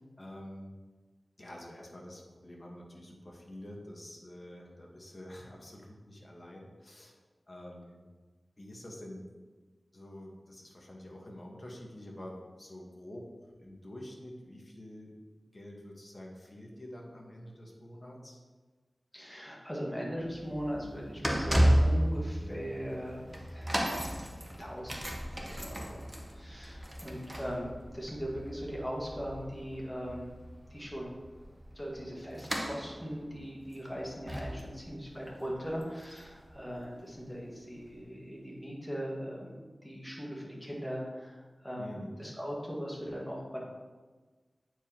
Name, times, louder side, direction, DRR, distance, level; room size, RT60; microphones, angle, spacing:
voice 1, 0.2-0.7 1.4-7.2 7.5-8.0 8.6-9.3 9.9-15.1 15.5-18.4 27.0-27.3 41.8-42.1, left 1 dB, 35° left, -1 dB, 1.3 m, -47 dB
voice 2, 19.1-24.0 24.6-26.1 26.4-30.3 30.7-31.1 31.8-43.6, equal, 5° left, -3 dB, 1.7 m, -39 dB
sound 1, 20.2-37.1 37.8-37.9, equal, 15° right, 1.0 m, -34 dB
8.8 x 4.6 x 3.0 m, 1.3 s
wide cardioid pair, 55°, 0 cm